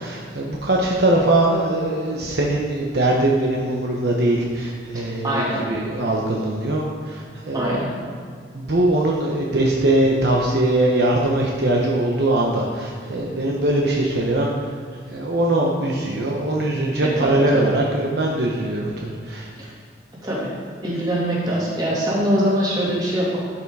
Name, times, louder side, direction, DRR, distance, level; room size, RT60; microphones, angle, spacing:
voice 1, 0.0-7.8 8.5-14.8 15.1-19.5, right 1 dB, 60° right, -2 dB, 1.0 m, -21 dB
voice 2, 4.9-5.6 7.5-7.9 17.2-17.7 19.6-19.7 20.2-20.5 20.8-23.4, equal, 20° right, -6 dB, 2.6 m, -23 dB
12.0 x 5.8 x 4.8 m, 2.2 s
head